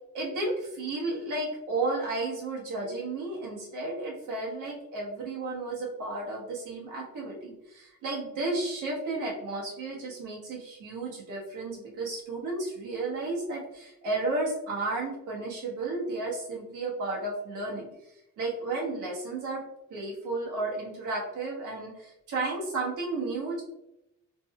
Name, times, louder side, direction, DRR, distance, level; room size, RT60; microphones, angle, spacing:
voice 1, 0.1-17.9 18.4-19.6 19.9-23.6, right 2 dB, 90° right, -3 dB, 1.4 m, -33 dB
4.3 x 4.2 x 2.3 m, 0.87 s
cardioid pair, 90°, 30 cm